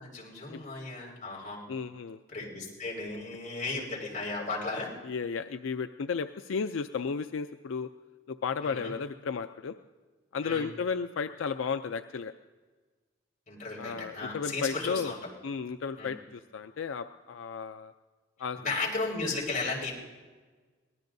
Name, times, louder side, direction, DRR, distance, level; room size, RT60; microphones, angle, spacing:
voice 1, 0.0-1.6 2.3-4.9 8.6-8.9 10.4-10.6 13.5-15.2 16.0-16.1 18.6-19.9, left 3 dB, 40° left, -4 dB, 5.1 m, -35 dB
voice 2, 1.7-2.2 5.0-7.9 8.3-9.7 10.3-12.3 13.8-15.1 15.4-17.9 18.4-18.6, left 5 dB, 85° left, 9 dB, 0.4 m, -33 dB
23.5 x 19.0 x 2.7 m, 1.4 s
head